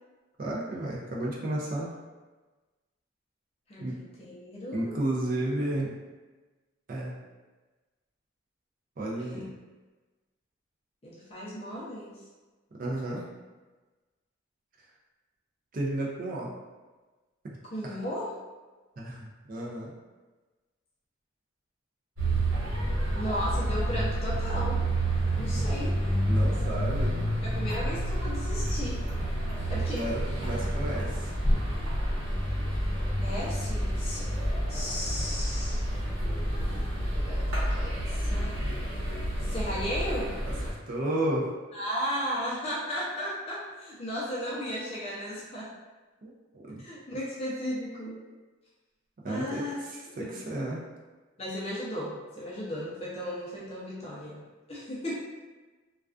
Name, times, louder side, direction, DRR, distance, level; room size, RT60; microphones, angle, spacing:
voice 1, 0.4-1.9 3.8-4.0 4.7-5.9 6.9-7.2 9.0-9.5 12.8-13.2 15.7-16.5 17.8-17.9 19.0-19.9 26.3-27.2 29.7-31.3 40.9-41.6 46.2-46.8 49.2-50.8, right 1 dB, 40° right, -3 dB, 0.4 m, -32 dB
voice 2, 3.7-5.0 9.2-9.5 11.0-12.1 17.7-18.3 23.1-24.8 25.3-25.9 27.4-29.0 29.7-30.0 33.2-34.3 34.7-35.9 37.3-38.8 39.4-40.4 41.7-45.7 46.8-48.2 49.3-49.7 50.0-50.6 51.4-55.2, equal, 30° left, -7 dB, 0.5 m, -35 dB
sound 1, 22.2-40.7, right 1 dB, 85° right, 1.0 m, -29 dB
2.3 x 2.3 x 2.4 m, 1.3 s
head